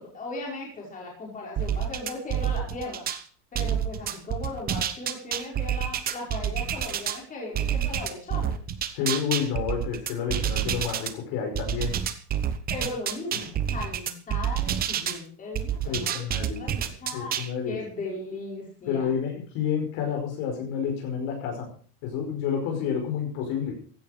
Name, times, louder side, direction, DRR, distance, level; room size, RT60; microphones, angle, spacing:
voice 1, 0.0-3.1 3.5-8.6 12.7-17.3 17.7-19.1, left 2 dB, 15° left, -3 dB, 5.4 m, -37 dB
sound 1, 1.6-3.2 3.5-7.2 7.5-11.1 11.5-15.2 15.5-17.5, right 9 dB, 20° right, 0.9 m, -28 dB
voice 2, 8.9-12.0 15.8-16.7 17.1-17.8 18.9-21.7 22.0-23.8, left 7 dB, 45° left, 2 dB, 5.3 m, -29 dB
16.0 x 11.0 x 5.1 m, 0.43 s
supercardioid pair, 160°, 46 cm